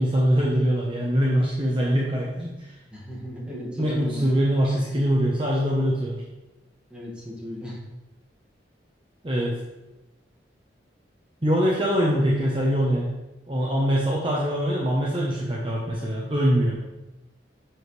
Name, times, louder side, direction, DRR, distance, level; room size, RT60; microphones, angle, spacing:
voice 1, 0.0-2.7 3.8-6.2 9.2-9.6 11.4-13.1 13.5-16.8, equal, 30° right, -4 dB, 1.0 m, -23 dB
voice 2, 2.9-4.2 6.9-7.8, left 1 dB, 5° right, -6 dB, 1.8 m, -36 dB
7.8 x 6.4 x 3.2 m, 1.0 s
head